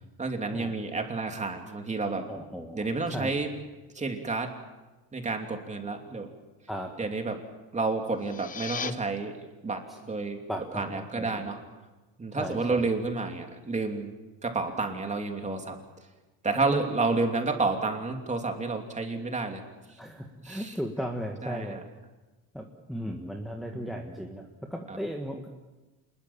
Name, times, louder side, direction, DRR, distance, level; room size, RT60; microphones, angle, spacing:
voice 1, 0.2-2.3 2.7-3.5 3.9-4.5 5.1-6.3 7.0-7.4 7.7-10.4 10.7-11.6 12.2-14.1 14.4-15.8 16.4-19.6 20.4-20.7 21.4-21.8 23.6-23.9 24.9-25.0, right 3 dB, 15° right, 4 dB, 2.9 m, -30 dB
voice 2, 2.3-3.4 6.7-6.9 10.5-11.4 12.3-12.9 16.5-16.9 20.0-21.8 22.5-25.5, equal, ahead, 2 dB, 1.6 m, -36 dB
sound 1, 8.1-8.9, left 6 dB, 20° left, 0.7 m, -36 dB
26.5 x 21.0 x 7.4 m, 1.2 s
cardioid pair, 145°, 43 cm